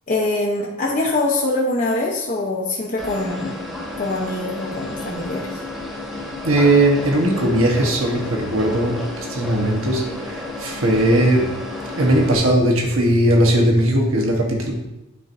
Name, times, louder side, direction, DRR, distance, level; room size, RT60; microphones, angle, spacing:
voice 1, 0.1-3.6 4.0-5.6, left 2 dB, 40° left, -3 dB, 0.8 m, -23 dB
sound 1, 3.0-12.3, left 2 dB, ahead, 1.3 m, -32 dB
voice 2, 6.4-9.0 9.3-11.5 12.0-14.7, right 1 dB, 70° right, 0 dB, 1.2 m, -18 dB
9.8 x 4.5 x 2.7 m, 0.93 s
head